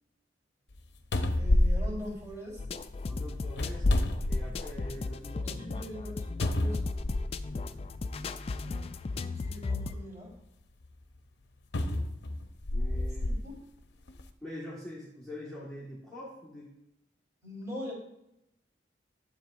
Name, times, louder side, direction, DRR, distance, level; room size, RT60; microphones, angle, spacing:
sound 1, 0.7-0.8 1.1-2.8 3.5-4.9 5.4-5.5 6.4-7.5 8.5-8.6 11.7-13.4 14.1-14.2, left 1 dB, 70° left, 0.7 m, -28 dB
voice 1, 1.3-2.6 5.4-6.9 8.6-10.3 13.3-13.6 17.4-17.9, left 1 dB, 20° right, -5 dB, 3.4 m, -42 dB
sound 2, 2.6-10.0, left 3 dB, 35° left, 0.3 m, -36 dB
voice 2, 3.1-3.8 4.2-5.7 7.7-7.9 12.7-13.4 14.4-16.7, left 1 dB, 5° left, -8 dB, 1.5 m, -44 dB
12.0 x 7.5 x 2.5 m, 0.83 s
head